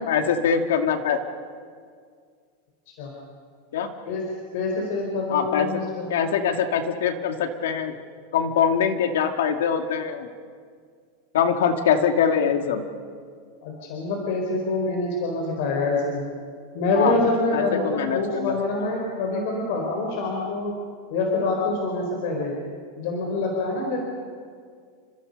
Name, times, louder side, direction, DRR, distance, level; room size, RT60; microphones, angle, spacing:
voice 1, 0.1-1.2 3.7-3.9 5.3-5.8 6.1-7.9 8.3-10.3 11.3-12.8 17.0-18.6 18.9-19.0, left 7 dB, 90° left, 5 dB, 2.4 m, -23 dB
voice 2, 4.5-6.3 13.6-16.2 16.7-20.7 21.1-22.5 23.0-24.0, left 2 dB, 50° left, 0 dB, 4.5 m, -26 dB
30.0 x 26.0 x 5.5 m, 2.1 s
supercardioid pair, 175°, 0 cm